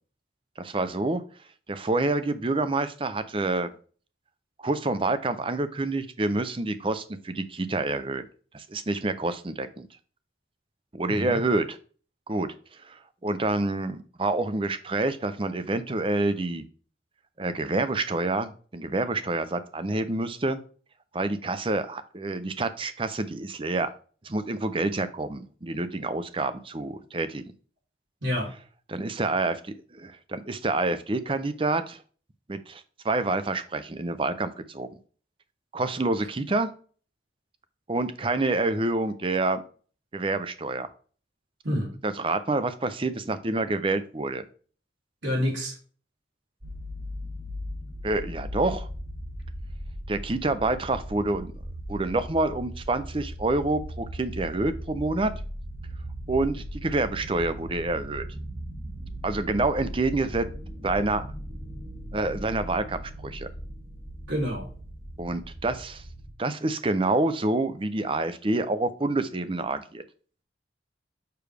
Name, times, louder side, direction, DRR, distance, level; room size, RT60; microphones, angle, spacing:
voice 1, 0.6-1.2 1.7-3.7 4.6-8.2 8.5-9.9 10.9-11.8 12.3-12.5 12.9-16.6 17.4-20.6 21.1-23.9 24.2-27.4 28.9-29.6 29.9-32.0 32.5-34.9 35.7-36.7 37.9-39.6 40.1-40.9 42.0-44.4 48.0-48.9 50.1-51.5 51.9-55.3 56.3-58.3 59.2-60.5 60.8-61.3 62.1-63.5 65.2-66.0 66.4-70.0, right 2 dB, 30° right, 12 dB, 0.6 m, -27 dB
voice 2, 11.1-11.4 28.2-28.5 41.6-41.9 45.2-45.7 64.3-64.7, equal, 75° right, -3 dB, 3.4 m, -28 dB
sound 1, 46.6-66.3, equal, 50° right, 2.4 m, -38 dB
6.8 x 6.3 x 3.4 m, 0.41 s
head